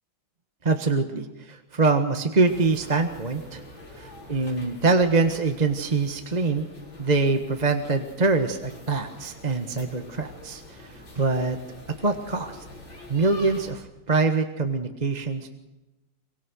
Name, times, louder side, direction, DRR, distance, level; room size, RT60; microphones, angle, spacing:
voice 1, 0.6-3.6 4.0-6.7 7.0-11.6 12.0-12.6 13.1-15.5, right 3 dB, 25° right, 6 dB, 1.4 m, -24 dB
sound 1, 2.4-13.7, left 1 dB, 85° left, 6.3 m, -46 dB
25.0 x 23.5 x 6.3 m, 1.0 s
omnidirectional pair, 2.1 m